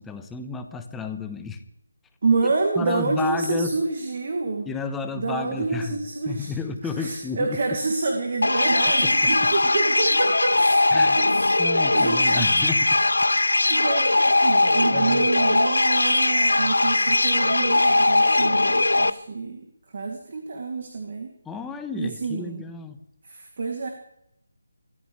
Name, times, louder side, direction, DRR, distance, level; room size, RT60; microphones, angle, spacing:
voice 1, 0.0-1.6 2.8-3.7 4.6-6.0 6.2-7.6 9.0-9.5 10.9-11.2 11.6-12.9 14.9-15.3 21.4-23.0, left 4 dB, 5° left, 7 dB, 1.2 m, -32 dB
voice 2, 2.2-4.7 5.1-6.5 7.0-11.6 11.9-12.5 13.7-19.7 19.9-21.3 21.9-22.6 23.3-23.9, right 3 dB, 45° right, 2 dB, 2.8 m, -27 dB
sound 1, 8.4-19.1, left 2 dB, 80° left, 1.0 m, -20 dB
24.0 x 14.5 x 3.4 m, 0.79 s
figure-of-eight pair, 160°, 0 cm